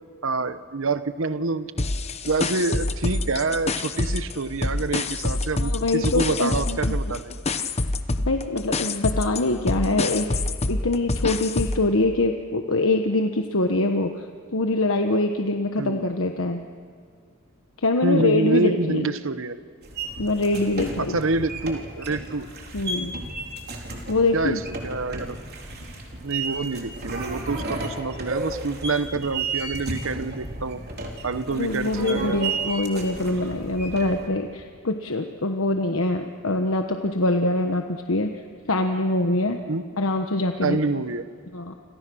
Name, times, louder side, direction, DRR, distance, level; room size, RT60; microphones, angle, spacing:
voice 1, 0.2-1.8 2.2-7.3 15.8-16.0 18.0-19.6 21.1-22.5 24.3-25.4 26.2-30.8 31.2-32.4 39.7-39.8 40.6-41.2, right 3 dB, 60° right, 12 dB, 0.9 m, -27 dB
sound 1, 1.8-4.3 4.6-11.9, left 2 dB, 30° left, 0.9 m, -26 dB
voice 2, 5.6-7.0 8.3-10.4 10.7-14.3 14.5-16.6 17.8-19.1 20.2-21.2 22.7-23.1 24.1-24.6 31.5-38.3 38.7-39.6 40.0-41.0 41.5-41.7, left 2 dB, 70° left, 5 dB, 1.2 m, -24 dB
sound 2, 19.8-34.3, right 3 dB, 45° right, 3.8 m, -33 dB
29.5 x 27.0 x 6.3 m, 2.2 s
head